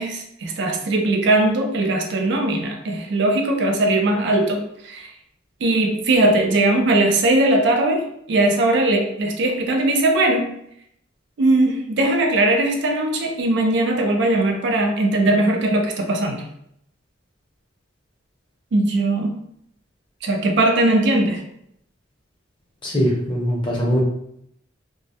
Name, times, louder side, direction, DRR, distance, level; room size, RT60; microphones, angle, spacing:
voice 1, 0.0-5.1 5.6-8.0 8.3-10.5 11.4-16.4 18.7-19.3 20.2-21.4, right 2 dB, 60° right, 3 dB, 0.4 m, -19 dB
voice 2, 22.8-24.0, equal, 25° left, -3 dB, 0.6 m, -21 dB
2.2 x 2.1 x 2.6 m, 0.72 s
head